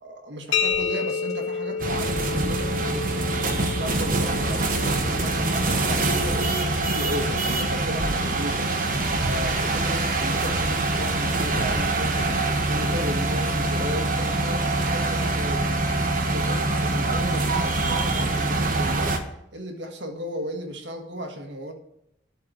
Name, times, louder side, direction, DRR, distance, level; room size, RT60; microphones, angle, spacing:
voice 1, 0.0-3.3 3.7-8.7 9.2-15.7 16.1-19.3 19.5-21.7, equal, 80° right, 4 dB, 1.6 m, -35 dB
sound 1, 0.5-8.1, left 5 dB, 85° left, 0.8 m, -31 dB
sound 2, 0.7-1.3 1.9-2.8 3.6-3.7 4.0-4.5 4.8-4.9 5.2-5.3 5.6-6.1 6.8-7.0 7.2-7.9 8.5-9.4 10.1-10.3 10.5-11.1 11.4-11.5 11.8-11.9 12.2-12.7 13.4-13.6 13.8-14.5 15.1-16.0 16.7-16.8 17.1-17.6 17.9-18.0 18.3-18.5, left 1 dB, 35° left, 2.7 m, -44 dB
sound 3, 1.8-19.2, right 2 dB, 45° right, 1.2 m, -24 dB
11.5 x 4.3 x 7.9 m, 0.82 s
head